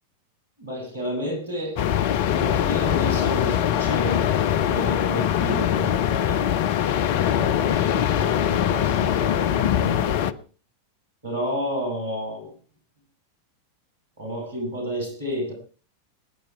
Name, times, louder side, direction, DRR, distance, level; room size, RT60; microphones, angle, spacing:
voice 1, 0.6-6.5 7.2-10.4 11.2-12.6 14.2-15.5, equal, 70° right, 2 dB, 7.1 m, -31 dB
sound 1, 1.8-10.3, left 10 dB, 50° left, 0.7 m, -22 dB
20.5 x 10.0 x 4.6 m, 0.37 s
figure-of-eight pair, 90°, 0 cm